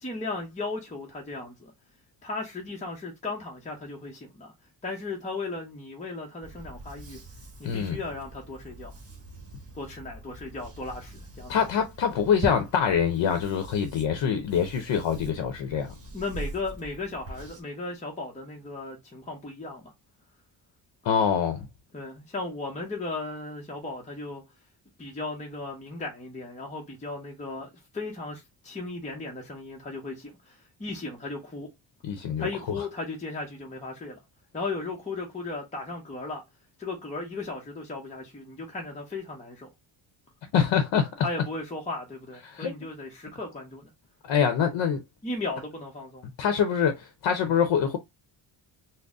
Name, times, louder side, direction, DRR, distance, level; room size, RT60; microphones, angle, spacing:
voice 1, 0.0-1.7 2.2-4.5 4.8-7.2 7.6-8.9 9.7-11.5 16.1-19.9 21.9-24.4 25.0-31.7 32.4-34.2 34.5-36.4 36.8-39.7 41.2-43.9 45.2-46.3, left 3 dB, 15° left, 0.7 m, -36 dB
sound 1, 6.4-17.6, right 2 dB, 30° right, 1.2 m, -42 dB
voice 2, 7.6-8.0 11.5-15.9 21.0-21.7 32.0-32.5 40.5-41.1 42.4-42.7 44.2-45.0 46.4-48.0, left 7 dB, 70° left, 0.8 m, -25 dB
3.9 x 2.1 x 3.5 m
cardioid pair, 140°, 46 cm